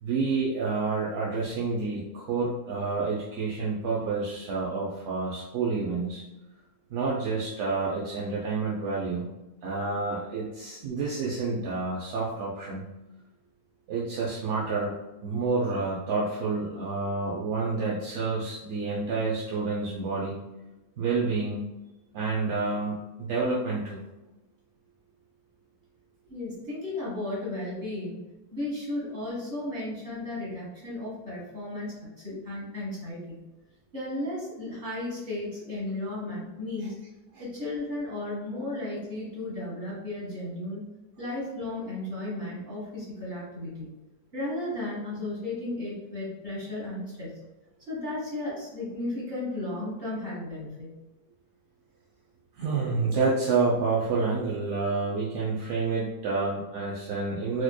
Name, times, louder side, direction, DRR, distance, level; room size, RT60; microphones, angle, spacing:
voice 1, 0.0-6.2 6.9-9.3 9.6-12.8 13.9-14.9 15.2-20.4 21.0-21.7 22.1-24.0 52.6-57.6, right 4 dB, 60° right, -5 dB, 0.8 m, -29 dB
voice 2, 26.3-28.2 28.5-33.4 33.9-37.0 37.4-40.8 41.2-43.9 44.3-47.4 47.9-51.0, left 2 dB, 40° right, -6 dB, 1.7 m, -34 dB
4.2 x 3.0 x 2.2 m, 1.0 s
omnidirectional pair, 1.6 m